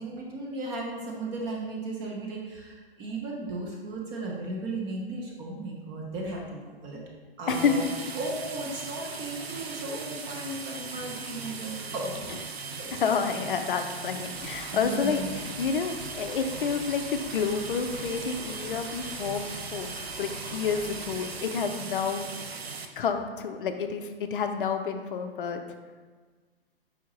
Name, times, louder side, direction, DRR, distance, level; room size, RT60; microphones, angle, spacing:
voice 1, 0.0-7.0 7.4-7.8 8.2-12.3 12.8-13.0 14.7-15.3, right 2 dB, 15° right, -2 dB, 0.4 m, -36 dB
voice 2, 7.5-7.9 12.9-15.2 15.6-22.3 23.0-25.6, left 6 dB, 60° left, 6 dB, 0.5 m, -29 dB
sound 1, 7.5-22.9, right 4 dB, 85° right, 0.5 m, -38 dB
sound 2, 14.3-21.4, right 1 dB, 70° right, 1.4 m, -45 dB
4.8 x 3.4 x 3.0 m, 1.4 s
figure-of-eight pair, 110°, 30 cm